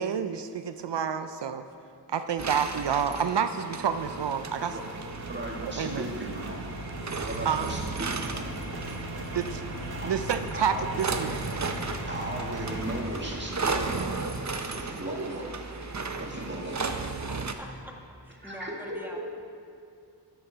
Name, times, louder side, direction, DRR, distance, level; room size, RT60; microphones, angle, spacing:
voice 1, 0.0-1.6 2.1-4.8 5.6-6.1 7.4-7.7 9.3-9.6 10.0-11.4, right 7 dB, 75° right, 10 dB, 0.5 m, -29 dB
sound 1, 2.4-17.5, right 4 dB, 40° right, 0.7 m, -35 dB
sound 2, 4.0-13.0, equal, 60° right, 1.5 m, -38 dB
voice 2, 5.3-6.6 7.1-8.5 9.9-10.1 10.5-10.9 12.1-14.2 14.7-15.4 16.2-16.8 18.4-19.0, right 1 dB, 25° right, -2 dB, 2.0 m, -36 dB
sound 3, 11.4-17.7, left 1 dB, 40° left, 1.5 m, -49 dB
voice 3, 15.0-15.5 17.3-17.9 18.2-19.2, equal, 5° right, 0 dB, 1.4 m, -44 dB
13.0 x 7.1 x 5.1 m, 2.5 s
wide cardioid pair, 70°, 42 cm